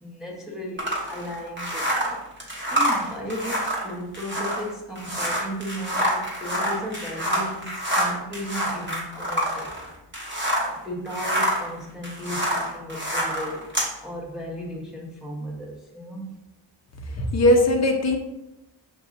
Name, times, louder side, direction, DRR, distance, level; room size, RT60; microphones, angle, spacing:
voice 1, 0.0-2.2 2.7-9.7 10.7-13.8 14.0-16.4, equal, ahead, -4 dB, 1.0 m, -35 dB
sound 1, 0.8-10.8 11.1-13.9, equal, 25° right, 1.2 m, -27 dB
voice 2, 17.1-18.2, left 1 dB, 35° left, 3 dB, 0.7 m, -19 dB
6.1 x 2.6 x 2.5 m, 0.88 s
cardioid pair, 65°, 47 cm